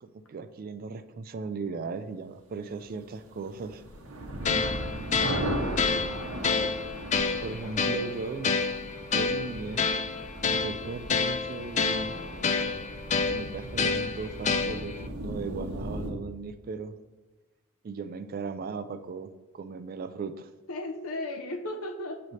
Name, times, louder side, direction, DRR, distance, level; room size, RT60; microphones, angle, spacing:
voice 1, 0.0-3.8 7.4-8.6 9.1-10.0 10.5-12.2 13.3-16.9 17.8-20.5, right 4 dB, 45° right, 10 dB, 0.3 m, -37 dB
sound 1, 3.3-16.1, right 1 dB, 75° right, 1.0 m, -37 dB
sound 2, 4.4-15.1, left 5 dB, 35° left, 0.4 m, -29 dB
voice 2, 5.2-6.1 7.6-7.7 20.7-22.2, left 1 dB, 80° left, 5 dB, 0.7 m, -37 dB
7.5 x 3.2 x 4.0 m, 1.2 s
head